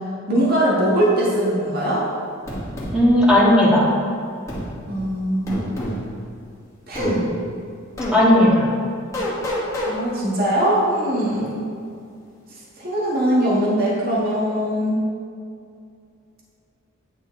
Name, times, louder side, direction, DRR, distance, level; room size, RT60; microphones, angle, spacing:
voice 1, 0.3-2.0 4.9-5.7 6.9-7.3 9.9-11.6 12.8-15.0, right 1 dB, 45° right, -6 dB, 1.8 m, -21 dB
sound 1, 2.5-2.9 4.5-4.7 5.5-6.0 6.9-7.1 8.0-8.2 9.1-9.9, left 1 dB, 15° left, 2.0 m, -27 dB
voice 2, 2.9-3.9 8.1-8.7, left 1 dB, 5° right, -7 dB, 2.0 m, -15 dB
9.5 x 7.5 x 3.3 m, 2.4 s
head